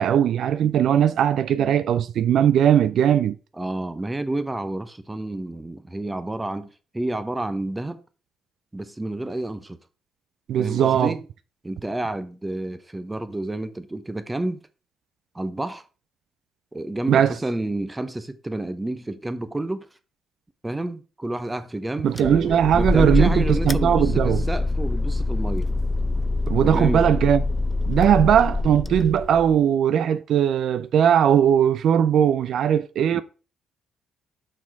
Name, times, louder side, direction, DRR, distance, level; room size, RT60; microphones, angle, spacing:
voice 1, 0.0-3.4 10.5-11.1 17.1-17.4 22.0-24.4 26.5-27.4 27.9-33.2, right 9 dB, 70° right, 0.4 m, -19 dB
voice 2, 3.6-6.7 6.9-8.0 8.7-9.8 10.6-11.2 11.6-14.6 15.3-15.8 16.7-19.9 20.6-25.7 26.6-27.1 33.1-33.2, right 1 dB, 15° right, 0.7 m, -30 dB
sound 1, 22.2-29.5, left 2 dB, 10° left, 0.3 m, -25 dB
6.0 x 4.5 x 4.6 m
cardioid pair, 90°, 0 cm